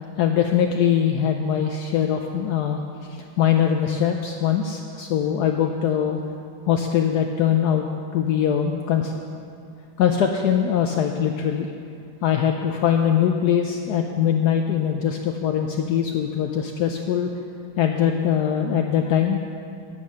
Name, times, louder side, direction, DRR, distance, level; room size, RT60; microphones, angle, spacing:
voice 1, 0.2-2.8 3.1-6.2 6.7-7.9 8.1-9.1 10.0-11.7 12.2-17.3 17.8-19.5, left 8 dB, 90° left, 3 dB, 0.8 m, -22 dB
8.7 x 8.3 x 6.2 m, 2.4 s
omnidirectional pair, 2.3 m